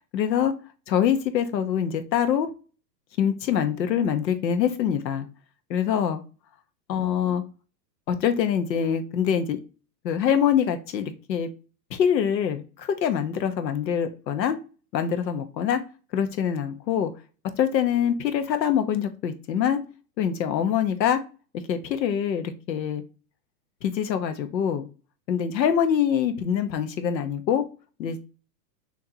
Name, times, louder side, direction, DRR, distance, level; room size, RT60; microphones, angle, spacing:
voice 1, 0.1-0.5 0.9-2.5 3.2-5.3 5.7-6.2 6.9-7.4 8.1-9.6 10.0-11.5 11.9-14.6 14.9-15.8 16.1-17.1 17.6-19.8 20.2-21.2 21.7-23.0 23.8-24.9 25.3-27.6 28.0-28.2, left 8 dB, 80° left, 9 dB, 1.1 m, -24 dB
6.4 x 2.9 x 2.8 m, 0.35 s
supercardioid pair, 180°, 50 cm